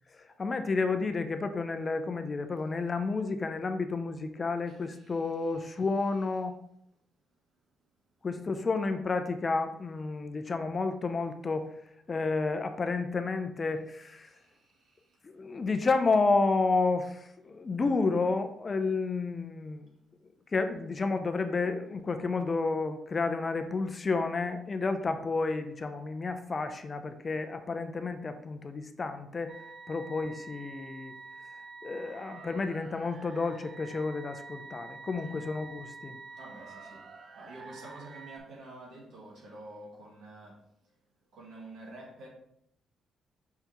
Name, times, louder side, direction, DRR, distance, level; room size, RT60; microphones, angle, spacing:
voice 1, 0.1-6.6 8.2-11.7 12.1-14.3 15.2-19.9 20.5-29.6 29.9-31.1 31.8-36.2, left 3 dB, 30° left, 9 dB, 0.5 m, -31 dB
voice 2, 4.7-5.8 13.9-15.3 35.2-35.4 36.4-41.0 41.3-42.3, right 2 dB, 70° right, -3 dB, 2.2 m, -50 dB
sound 1, 29.5-38.4, right 4 dB, 45° right, 0.6 m, -48 dB
5.6 x 5.6 x 3.0 m, 0.75 s
cardioid pair, 130°, 0 cm